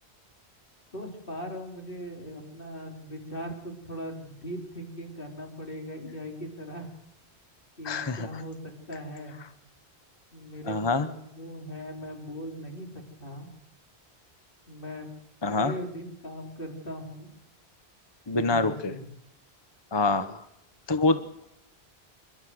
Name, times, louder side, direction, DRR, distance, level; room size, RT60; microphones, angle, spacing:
voice 1, 0.9-6.9 7.8-9.4 10.3-13.5 14.7-15.1 15.5-17.3 18.3-19.0, equal, 55° left, 2 dB, 4.3 m, -39 dB
voice 2, 7.8-8.3 10.7-11.1 15.4-15.7 18.3-18.9 19.9-20.4 20.9-21.2, left 3 dB, 25° left, 12 dB, 0.9 m, -25 dB
28.0 x 12.0 x 7.9 m, 0.81 s
omnidirectional pair, 1.1 m